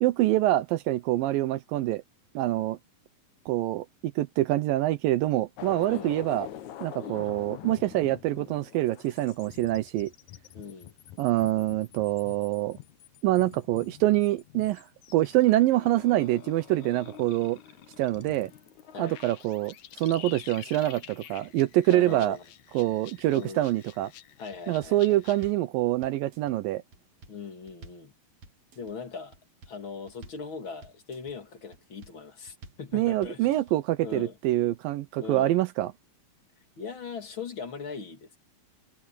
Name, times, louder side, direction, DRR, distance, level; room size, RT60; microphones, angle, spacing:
voice 1, 0.0-2.0 2.4-2.8 3.5-6.5 6.8-10.1 11.2-12.8 13.2-14.8 15.1-17.6 18.0-18.5 19.0-22.4 22.7-24.1 24.7-26.8 32.9-35.9, right 15 dB, 80° right, 2.5 m, -25 dB
sound 1, 5.6-25.5, left 11 dB, 65° left, 2.3 m, -46 dB
voice 2, 7.0-7.4 10.5-10.9 18.9-19.2 21.9-22.4 23.3-23.7 24.4-25.2 27.3-28.1 28.7-29.4 29.7-33.6 34.0-34.4 35.2-35.6 36.8-38.4, left 5 dB, 35° left, 3.2 m, -40 dB
sound 2, 24.5-25.0 25.3-25.7 26.0-26.5 26.9-27.4 27.7-28.1 28.4-28.9 29.3-29.8 30.1-30.5 30.8-31.3 31.7-32.2 32.5-32.9 33.2-33.7 34.1-34.2, right 2 dB, 55° right, 3.7 m, -50 dB
omnidirectional pair, 4.0 m